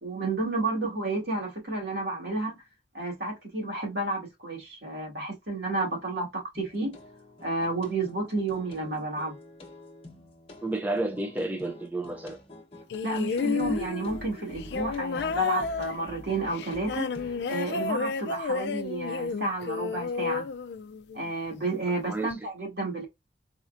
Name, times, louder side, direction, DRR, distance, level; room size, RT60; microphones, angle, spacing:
voice 1, 0.0-2.6 2.9-7.0 7.4-9.4 13.0-17.1 17.5-20.5 21.1-23.1, right 2 dB, 70° right, 2.0 m, -31 dB
sound 1, 6.5-17.5, left 1 dB, 30° left, 0.8 m, -47 dB
voice 2, 10.6-12.4 22.1-22.4, right 2 dB, 10° right, 0.3 m, -31 dB
sound 2, 12.9-21.3 22.3-22.4, left 5 dB, 70° left, 0.3 m, -31 dB
4.1 x 2.5 x 2.4 m
head